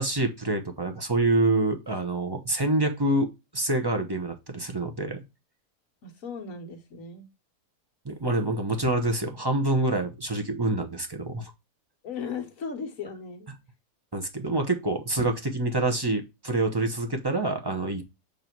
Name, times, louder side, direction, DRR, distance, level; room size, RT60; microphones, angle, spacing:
voice 1, 0.0-3.3 3.5-5.2 8.0-11.5 14.1-18.0, right 2 dB, 20° right, 0.7 m, -26 dB
voice 2, 6.0-7.3 12.0-13.5, left 5 dB, 55° left, 1.6 m, -37 dB
7.6 x 3.3 x 4.5 m
omnidirectional pair, 1.7 m